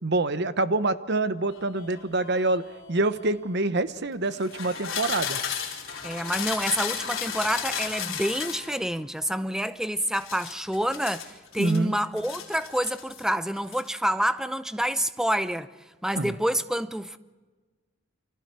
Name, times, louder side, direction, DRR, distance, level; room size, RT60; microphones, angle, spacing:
voice 1, 0.0-2.6 2.9-5.4 11.6-12.0 16.1-16.3, right 2 dB, 55° right, 1.1 m, -26 dB
sound 1, 1.5-3.4 4.3-8.7 10.1-11.8 12.2-13.3 13.6-13.9, left 7 dB, 70° left, 4.3 m, -34 dB
voice 2, 6.0-15.7 16.0-17.2, equal, 5° right, 0.7 m, -28 dB
30.0 x 25.5 x 4.8 m
head